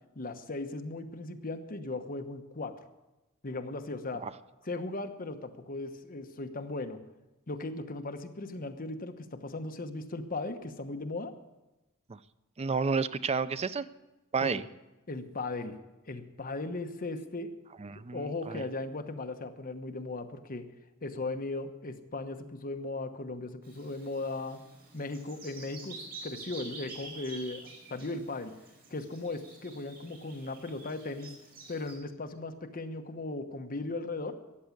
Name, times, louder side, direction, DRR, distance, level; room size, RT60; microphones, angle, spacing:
voice 1, 0.1-2.8 3.4-4.3 4.6-7.0 7.5-11.4 14.4-14.6 15.1-15.8 16.1-17.6 18.1-20.7 21.0-24.6 24.9-28.6 28.9-31.4 31.7-34.4, left 2 dB, 40° left, 7 dB, 1.1 m, -37 dB
voice 2, 12.6-13.8 14.3-14.6 17.8-18.6, right 5 dB, 30° right, 14 dB, 0.5 m, -31 dB
Bird vocalization bird call bird song, 23.6-31.9, right 3 dB, 45° right, 5.0 m, -48 dB
14.0 x 9.4 x 8.5 m, 1.0 s
head